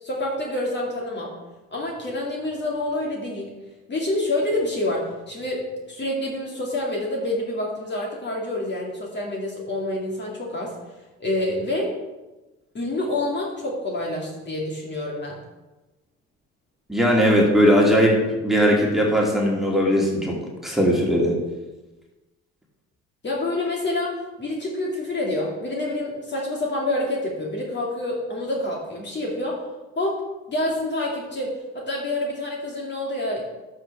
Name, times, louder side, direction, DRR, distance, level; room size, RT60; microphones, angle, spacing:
voice 1, 0.0-1.3 1.7-3.5 3.9-10.7 11.2-12.0 12.7-15.4 23.2-29.6 30.0-33.4, left 1 dB, 30° left, -2 dB, 2.3 m, -27 dB
voice 2, 16.9-20.4 20.6-21.3, equal, ahead, -3 dB, 2.6 m, -19 dB
12.0 x 6.3 x 3.5 m, 1.1 s
hypercardioid pair, 60°, 34 cm